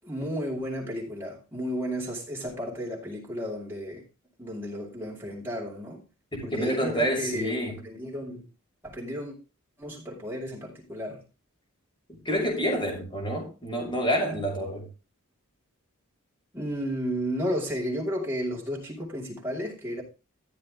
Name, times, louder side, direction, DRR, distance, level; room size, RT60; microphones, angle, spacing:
voice 1, 0.0-4.0 4.4-6.1 6.4-7.5 7.8-8.5 8.8-9.4 9.8-11.2 16.5-20.0, equal, 10° right, 6.1 m, -33 dB
voice 2, 6.3-7.9 12.1-14.9, equal, 20° left, 6.4 m, -28 dB
15.0 x 7.8 x 3.8 m
head